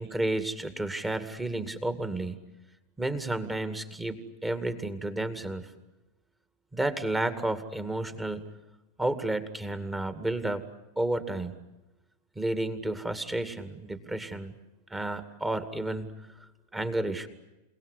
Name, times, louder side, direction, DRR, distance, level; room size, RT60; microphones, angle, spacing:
voice 1, 0.0-2.4 3.0-5.7 6.7-8.5 9.0-10.6 11.0-11.6 12.4-14.5 14.9-16.1 16.7-17.3, right 2 dB, 10° right, 11 dB, 2.2 m, -31 dB
29.5 x 18.5 x 9.9 m, 1.0 s
figure-of-eight pair, 90°, 0 cm